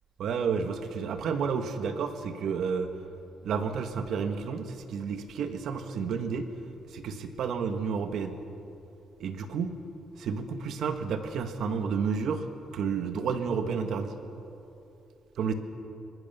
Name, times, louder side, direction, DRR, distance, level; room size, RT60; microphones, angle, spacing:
voice 1, 0.2-2.9 3.4-6.5 6.9-8.4 9.2-9.8 10.2-12.5 12.7-14.1 15.4-15.5, right 6 dB, 65° right, 7 dB, 1.7 m, -31 dB
22.5 x 20.5 x 7.0 m, 2.8 s
cardioid pair, 150°, 0 cm